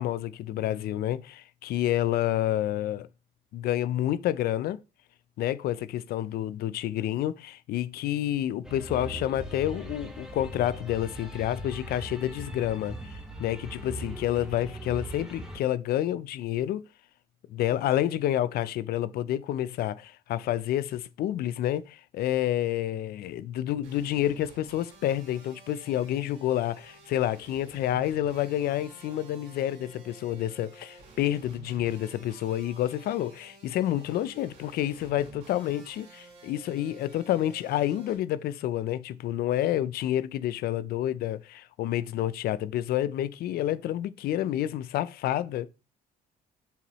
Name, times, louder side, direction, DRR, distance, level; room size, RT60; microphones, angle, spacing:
voice 1, 0.0-3.1 3.5-4.8 5.4-16.8 17.5-45.7, left 12 dB, 65° left, 0.4 m, -29 dB
sound 1, 8.6-15.6, equal, 5° right, 1.3 m, -40 dB
sound 2, 23.8-38.2, right 4 dB, 80° right, 2.4 m, -52 dB
6.9 x 4.6 x 3.0 m
cardioid pair, 110°, 17 cm